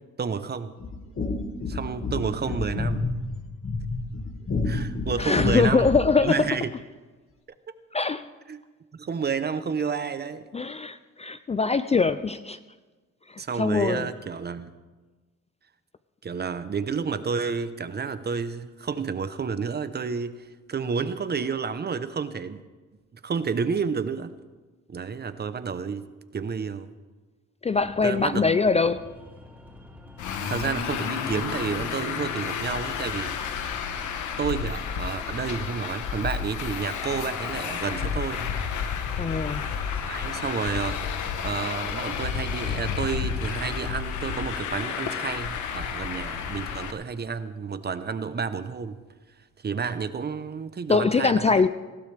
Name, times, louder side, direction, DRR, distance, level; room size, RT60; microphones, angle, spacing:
voice 1, 0.2-0.7 1.7-3.1 4.6-5.9 6.1-6.7 8.5-8.6 8.9-10.5 13.4-14.7 16.2-22.6 23.2-24.3 24.9-26.1 26.3-26.9 28.0-28.5 30.3-33.4 34.4-38.5 40.0-49.0 49.6-51.6, right 5 dB, 35° right, 12 dB, 0.9 m, -30 dB
sound 1, 0.8-6.2, left 3 dB, 45° left, 1.9 m, -30 dB
voice 2, 5.2-6.5 7.9-8.3 10.5-12.6 13.3-14.1 27.6-29.0 39.2-39.9 50.9-51.7, left 4 dB, 20° left, 12 dB, 0.4 m, -23 dB
sound 2, 27.7-41.6, left 1 dB, 5° right, 3.1 m, -48 dB
Traffic noise roadway noise, 30.2-46.9, left 7 dB, 80° left, 1.2 m, -31 dB
20.0 x 15.5 x 3.4 m, 1.3 s
cardioid pair, 90°, 30 cm